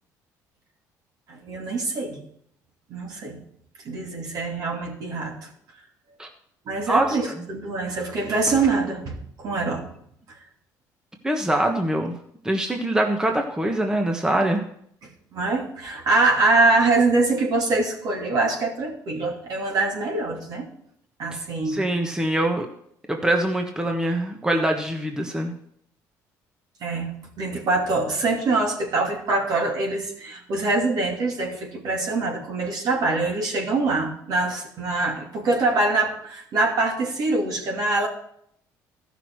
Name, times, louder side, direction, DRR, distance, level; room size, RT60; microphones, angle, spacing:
voice 1, 1.3-2.2 2.9-3.4 3.8-5.5 6.7-9.8 15.3-20.7 21.2-21.8 26.8-27.1 27.4-38.1, right 3 dB, 60° right, 0 dB, 2.7 m, -24 dB
voice 2, 6.9-7.2 11.2-12.1 12.4-14.7 21.6-22.7 23.1-25.6, right 1 dB, 10° right, 3 dB, 1.3 m, -23 dB
13.5 x 6.1 x 4.7 m, 0.70 s
supercardioid pair, 80°, 7 cm